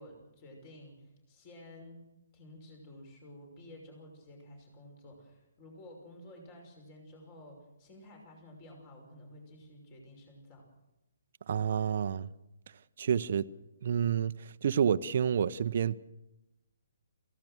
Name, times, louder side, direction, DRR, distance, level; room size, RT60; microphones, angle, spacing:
voice 1, 0.0-2.0 2.3-10.7, left 1 dB, 30° left, 5.9 m, -52 dB
voice 2, 11.5-12.3 13.0-13.5 13.8-14.3 14.6-16.0, right 8 dB, 50° right, 0.8 m, -28 dB
28.0 x 16.5 x 6.5 m
figure-of-eight pair, 135°, 0 cm